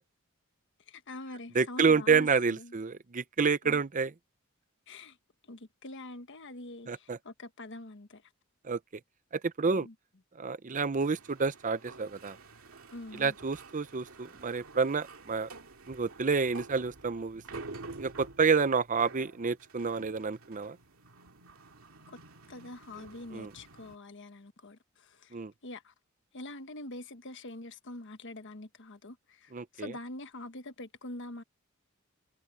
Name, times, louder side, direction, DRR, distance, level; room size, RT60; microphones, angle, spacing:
voice 1, 0.9-2.7 3.6-3.8 4.9-5.2 5.5-8.2 9.6-9.9 12.9-13.3 22.1-22.2 22.5-25.9 26.3-31.4, left 2 dB, 60° left, 1.3 m, -45 dB
voice 2, 1.5-4.1 6.9-7.2 8.6-8.8 9.4-9.9 10.4-12.4 13.2-15.5 15.9-17.4 18.0-20.8 23.3-23.5 25.3-25.5 29.5-29.9, right 5 dB, 40° right, 0.6 m, -29 dB
sound 1, 11.0-24.0, right 3 dB, 75° right, 2.4 m, -50 dB
head